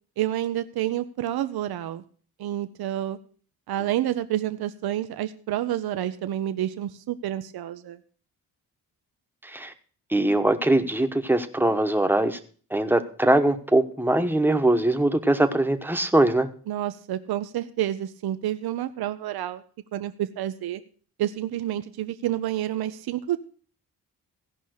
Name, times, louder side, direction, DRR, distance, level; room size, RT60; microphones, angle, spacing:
voice 1, 0.2-2.0 2.4-3.2 3.7-8.0 16.7-19.6 19.9-20.8 21.2-23.4, right 12 dB, 85° right, 10 dB, 0.7 m, -29 dB
voice 2, 9.4-9.7 10.1-12.4 12.7-16.5, right 1 dB, 5° right, 7 dB, 1.1 m, -22 dB
16.0 x 5.6 x 6.4 m, 0.44 s
cardioid pair, 95°, 36 cm